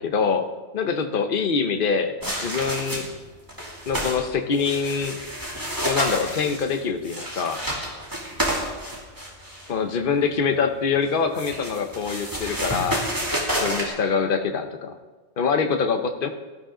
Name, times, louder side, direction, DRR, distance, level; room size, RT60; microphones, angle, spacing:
voice 1, 0.0-3.0 3.9-5.2 5.8-7.6 9.7-13.1 13.6-14.9 15.4-16.3, left 5 dB, 50° left, 6 dB, 1.0 m, -24 dB
sound 1, 2.2-3.2 3.5-4.2 4.5-9.7 11.0-13.9, equal, 15° right, 2.7 m, -29 dB
17.5 x 12.0 x 3.8 m, 1.3 s
omnidirectional pair, 1.3 m